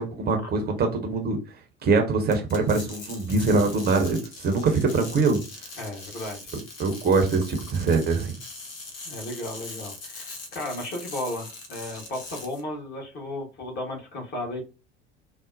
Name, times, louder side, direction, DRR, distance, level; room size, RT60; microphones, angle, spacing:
voice 1, 0.0-1.6 1.8-5.4 6.8-8.4, right 3 dB, 30° right, 4 dB, 0.7 m, -23 dB
sound 1, 2.3-12.6, left 3 dB, 65° left, 1.0 m, -41 dB
voice 2, 5.8-6.4 9.0-14.6, left 1 dB, 35° left, 0 dB, 1.2 m, -34 dB
3.9 x 2.0 x 2.5 m, 0.30 s
figure-of-eight pair, 70°, 30 cm